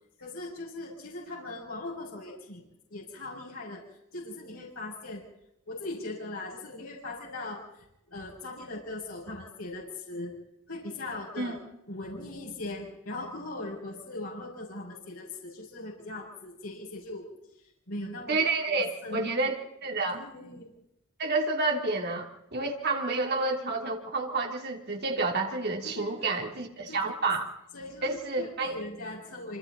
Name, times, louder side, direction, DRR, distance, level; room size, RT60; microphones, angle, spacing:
voice 1, 0.2-2.6 2.9-3.8 4.1-5.2 5.7-10.3 10.7-11.6 11.9-17.3 17.6-18.4 18.7-19.5 20.1-20.7 25.8-26.4 26.9-27.1 27.7-29.6, left 2 dB, 80° left, -3 dB, 6.2 m, -40 dB
voice 2, 18.3-20.2 21.2-27.5 28.0-28.7, right 3 dB, 50° right, 2 dB, 3.2 m, -29 dB
26.5 x 26.5 x 4.1 m, 0.85 s
head